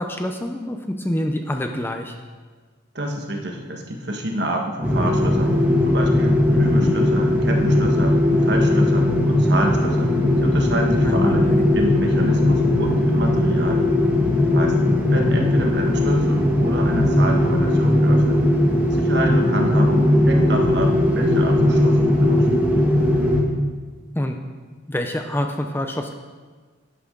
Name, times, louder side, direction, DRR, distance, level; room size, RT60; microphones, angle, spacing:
voice 1, 0.0-2.2 6.5-6.9 11.0-11.7 19.2-19.4 24.1-24.4 24.9-26.1, left 1 dB, 10° left, 5 dB, 0.6 m, -26 dB
voice 2, 2.9-5.6 5.8-10.1 10.4-13.8 14.4-18.4 18.9-22.5, right 1 dB, 60° right, 1 dB, 1.5 m, -27 dB
sound 1, 4.8-23.4, left 1 dB, 10° right, 1.3 m, -18 dB
12.0 x 9.7 x 3.8 m, 1.4 s
head